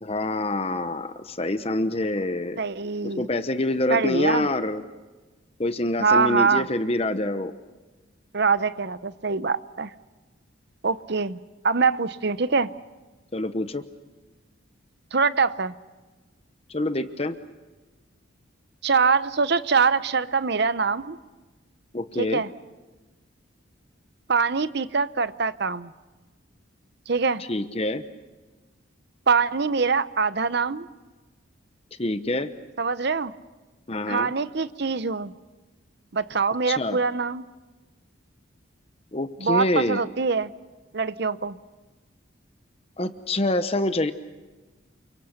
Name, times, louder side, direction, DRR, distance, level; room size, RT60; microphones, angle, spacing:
voice 1, 0.0-2.6 3.0-4.8 5.6-7.5 13.3-13.8 16.7-17.4 21.9-22.4 27.5-28.0 32.0-32.5 33.9-34.3 36.6-37.0 39.1-40.0 43.0-44.1, left 1 dB, 30° left, 10 dB, 0.9 m, -26 dB
voice 2, 2.6-3.3 3.9-4.5 6.0-6.7 8.3-9.9 10.8-12.7 15.1-15.7 18.8-21.2 22.2-22.5 24.3-25.9 27.1-27.4 29.3-30.9 32.8-33.3 34.1-35.3 36.1-37.4 39.4-40.5 40.9-41.6, right 5 dB, 55° right, 14 dB, 0.8 m, -24 dB
29.0 x 24.5 x 6.6 m, 1.2 s
head